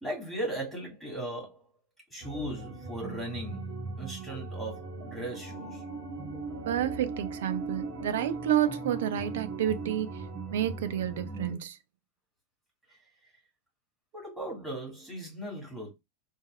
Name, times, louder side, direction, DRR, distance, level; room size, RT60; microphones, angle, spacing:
voice 1, 0.0-1.7 2.1-5.9 12.9-13.0 14.1-15.9, right 1 dB, 5° right, 1.9 m, -38 dB
sound 1, 2.2-11.5, right 3 dB, 40° right, 1.6 m, -39 dB
voice 2, 6.7-10.1 10.5-11.8, right 10 dB, 55° right, 0.4 m, -30 dB
3.9 x 2.4 x 2.3 m
figure-of-eight pair, 90°, 0 cm